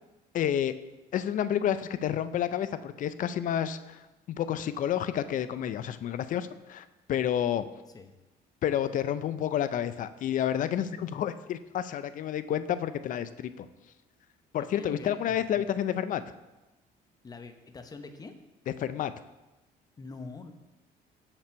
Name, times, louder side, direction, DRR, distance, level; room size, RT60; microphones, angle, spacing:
voice 1, 0.3-0.7 1.1-4.0 4.3-7.7 8.6-13.7 14.5-16.2 18.8-19.1, left 10 dB, 50° left, 13 dB, 0.4 m, -30 dB
voice 2, 14.6-15.7 17.2-18.3 20.0-20.5, left 3 dB, 20° left, 7 dB, 0.7 m, -44 dB
6.6 x 5.9 x 4.5 m, 1.1 s
cardioid pair, 110°, 17 cm